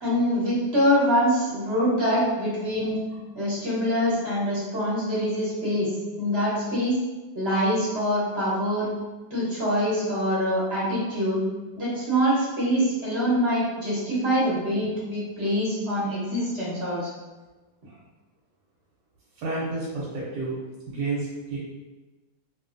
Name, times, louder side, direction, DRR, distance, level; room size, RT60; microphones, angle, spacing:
voice 1, 0.0-3.0 3.3-5.9 6.2-7.0 7.3-8.9 9.3-11.4 11.8-17.1, equal, 45° right, -8 dB, 1.0 m, -24 dB
voice 2, 19.4-20.6 20.9-21.6, right 3 dB, 85° right, -6 dB, 1.3 m, -30 dB
3.0 x 2.6 x 2.4 m, 1.2 s
omnidirectional pair, 1.9 m